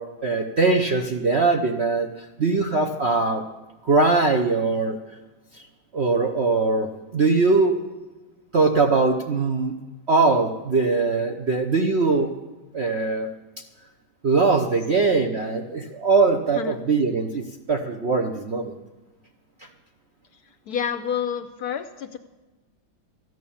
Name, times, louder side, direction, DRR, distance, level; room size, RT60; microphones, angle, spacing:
voice 1, 0.0-3.4 3.8-5.0 5.5-5.7 5.9-7.8 8.5-9.7 10.1-12.3 12.7-13.3 14.2-18.7, right 3 dB, 55° right, 4 dB, 0.7 m, -21 dB
voice 2, 20.7-22.2, left 8 dB, 70° left, 9 dB, 1.0 m, -28 dB
14.0 x 9.4 x 7.0 m, 1.2 s
omnidirectional pair, 2.1 m